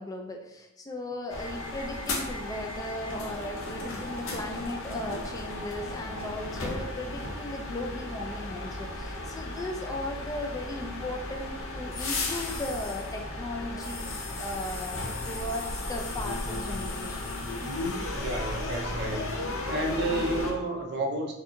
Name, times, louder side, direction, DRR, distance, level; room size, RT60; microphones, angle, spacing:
voice 1, 0.0-14.0 14.4-15.0 15.3-17.2, left 1 dB, 15° left, 1 dB, 0.4 m, -37 dB
sound 1, 1.3-20.5, left 2 dB, 65° left, 0.8 m, -35 dB
voice 2, 18.1-19.3 19.7-21.3, right 2 dB, 50° right, 2 dB, 0.6 m, -31 dB
4.7 x 2.7 x 2.6 m, 0.89 s
head